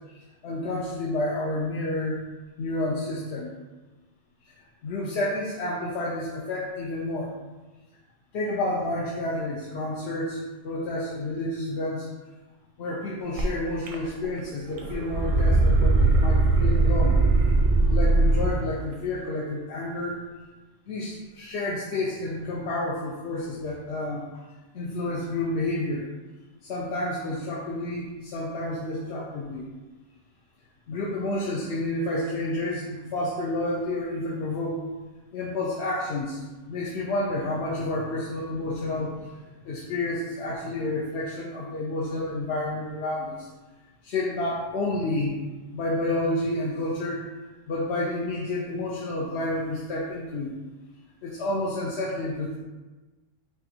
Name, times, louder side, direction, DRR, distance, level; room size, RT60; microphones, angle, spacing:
voice 1, 0.1-2.2 2.6-3.5 4.8-7.4 8.3-12.1 12.8-17.2 17.9-20.2 20.9-24.5 24.7-26.1 26.6-29.6 30.9-34.8 35.3-39.3 39.6-43.5 44.0-45.4 45.7-47.2 47.7-50.6 51.2-52.6, left 2 dB, 65° left, -4 dB, 0.8 m, -30 dB
sound 1, 13.4-13.5 13.9-14.4 14.7-18.7, right 2 dB, 85° right, 1.1 m, -20 dB
5.9 x 2.5 x 2.8 m, 1.2 s
omnidirectional pair, 1.3 m